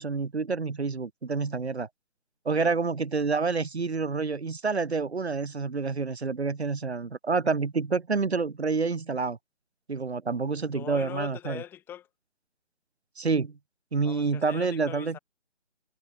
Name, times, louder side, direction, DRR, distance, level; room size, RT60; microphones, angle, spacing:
voice 1, 0.0-1.9 2.5-9.4 9.9-11.6 13.2-13.5 13.9-15.2, right 4 dB, 60° right, 1.8 m, -28 dB
voice 2, 10.7-12.1 14.0-15.2, left 10 dB, 5° left, 1.6 m, -41 dB
figure-of-eight pair, 150°, 36 cm